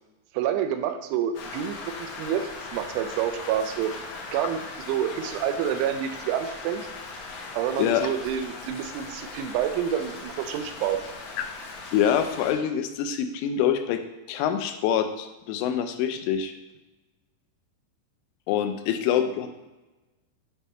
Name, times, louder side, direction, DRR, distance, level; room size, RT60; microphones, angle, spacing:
voice 1, 0.3-3.9 4.3-4.6 4.9-6.9 7.5-11.0, right 9 dB, 85° right, 7 dB, 2.9 m, -28 dB
Rain, 1.3-12.5, left 3 dB, 75° left, 2.7 m, -39 dB
voice 2, 11.9-14.0 14.3-16.5 18.5-19.5, left 9 dB, 90° left, 7 dB, 3.1 m, -25 dB
9.2 x 3.5 x 4.2 m, 1.1 s
omnidirectional pair, 5.5 m